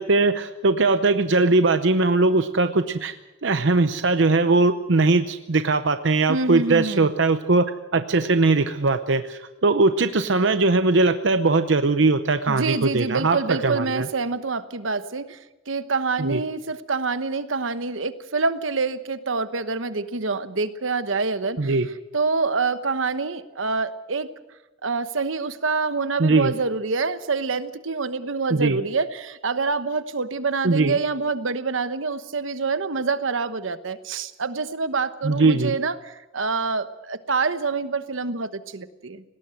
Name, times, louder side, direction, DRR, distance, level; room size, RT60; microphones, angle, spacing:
voice 1, 0.0-3.2 3.4-7.7 7.9-14.1 16.2-16.4 21.6-21.9 26.2-26.5 28.5-28.8 30.6-31.0 35.2-35.7, right 3 dB, 65° right, 9 dB, 0.8 m, -20 dB
voice 2, 6.3-7.1 12.5-21.8 22.1-24.3 24.8-39.2, right 4 dB, 80° right, 12 dB, 1.1 m, -26 dB
19.5 x 17.5 x 7.8 m, 1.0 s
head